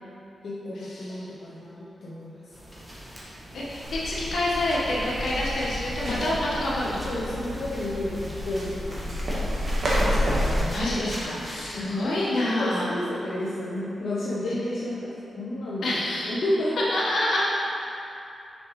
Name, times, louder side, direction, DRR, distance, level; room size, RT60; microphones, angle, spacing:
voice 1, 0.4-2.4 6.1-6.2 7.1-9.1 11.7-12.1 12.4-16.8, left 1 dB, 65° left, -7 dB, 0.8 m, -31 dB
sound 1, 2.5-11.8, equal, 5° right, 1.5 m, -43 dB
voice 2, 3.5-6.9 10.5-12.9 14.4-15.0 15.8-16.3 16.9-17.4, left 1 dB, 80° left, -7 dB, 1.4 m, -28 dB
sound 2, 3.8-10.6, equal, 70° right, 1.4 m, -29 dB
6.7 x 5.2 x 3.2 m, 2.7 s
cardioid pair, 65°, 0 cm